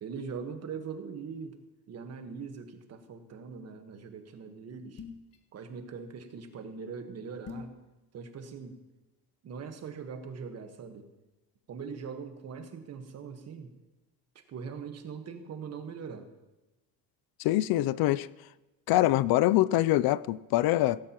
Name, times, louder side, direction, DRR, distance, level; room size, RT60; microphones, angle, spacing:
voice 1, 0.0-1.6 1.9-5.0 5.5-7.7 8.1-8.8 9.4-11.1 11.7-13.7 14.3-16.3, right 6 dB, 40° right, 1.4 m, -41 dB
sound 1, 5.0-5.4 7.4-7.8, left 6 dB, 40° left, 1.3 m, -42 dB
voice 2, 17.4-18.3 18.9-21.0, left 15 dB, 75° left, 0.5 m, -24 dB
16.5 x 15.5 x 3.0 m
cardioid pair, 160°, 37 cm